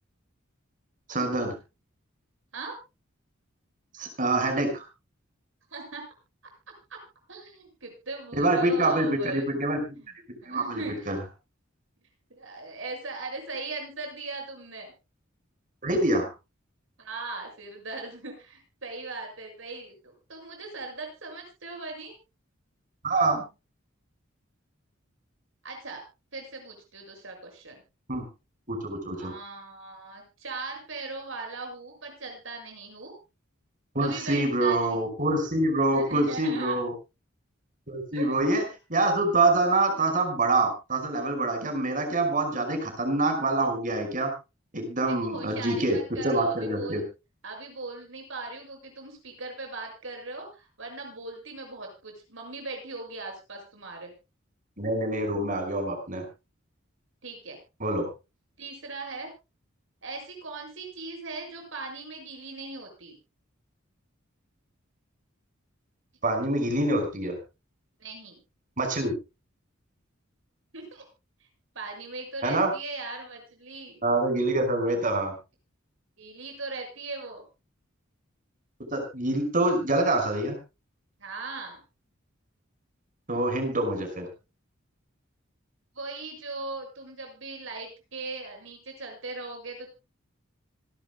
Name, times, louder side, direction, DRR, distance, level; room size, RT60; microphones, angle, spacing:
voice 1, 1.1-1.6 3.9-4.8 8.3-9.8 10.5-11.2 15.8-16.3 23.0-23.4 28.1-28.2 28.7-29.3 33.9-36.9 37.9-38.6 38.9-44.3 44.7-46.0 46.2-47.0 54.8-56.3 57.8-58.1 66.2-67.4 68.8-69.1 72.4-72.7 74.0-75.3 78.9-80.6 83.3-84.3, right 2 dB, 45° right, 5 dB, 5.5 m, -25 dB
voice 2, 5.7-6.0 6.9-7.0 7.3-9.4 9.9-10.1 10.4-11.1 12.3-14.9 17.0-22.1 25.6-26.0 26.3-27.8 29.2-33.1 34.0-35.0 35.8-36.8 38.1-38.4 45.1-47.1 47.4-54.1 57.2-57.6 58.6-59.3 60.0-63.2 68.0-68.4 70.7-71.1 71.8-74.0 76.2-77.4 81.2-81.8 85.9-89.9, right 3 dB, 70° right, 3 dB, 6.9 m, -39 dB
26.0 x 12.0 x 2.2 m, 0.28 s
head